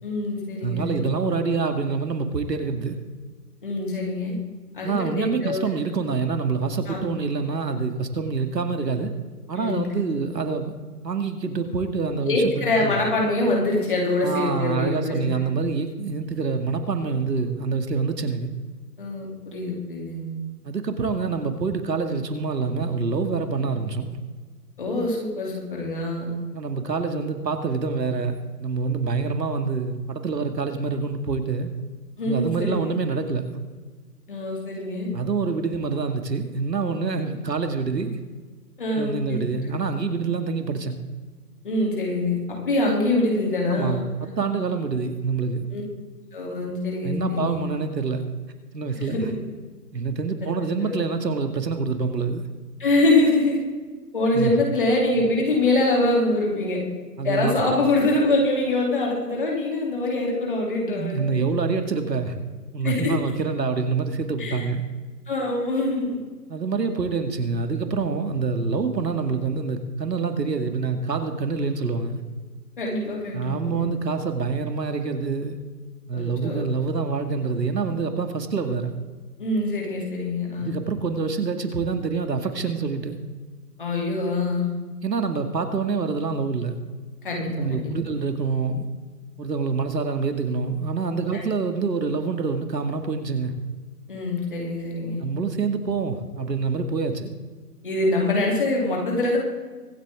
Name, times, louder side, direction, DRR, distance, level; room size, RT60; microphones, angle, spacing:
voice 1, 0.0-1.2 3.6-4.3 4.7-5.6 6.9-7.1 9.6-9.8 12.2-15.5 19.0-20.3 24.8-26.3 32.2-32.9 34.3-35.1 38.8-39.4 41.6-42.4 42.6-44.4 45.7-45.8 46.3-47.6 49.0-49.3 50.4-50.5 50.8-51.0 52.8-53.6 54.1-56.8 57.2-61.4 62.8-63.1 64.4-64.6 65.3-66.2 72.8-73.9 76.1-76.6 79.4-80.7 83.8-84.8 87.2-87.9 91.3-91.4 94.1-95.2 97.8-99.4, left 2 dB, 30° left, -2 dB, 2.9 m, -24 dB
voice 2, 0.6-3.0 4.8-9.1 9.5-10.7 11.0-12.9 14.2-18.5 20.6-24.2 26.5-31.7 32.3-33.6 35.1-38.2 39.0-41.0 43.7-45.7 47.0-48.2 48.7-49.3 49.9-52.5 54.3-54.5 57.2-57.6 60.9-62.3 62.7-64.8 66.5-72.2 73.3-75.6 76.1-79.0 80.6-83.2 85.0-86.8 87.6-88.9 89.4-93.5 95.2-97.3, right 4 dB, 90° right, 7 dB, 2.1 m, -26 dB
24.0 x 8.2 x 3.6 m, 1.4 s
hypercardioid pair, 180°, 48 cm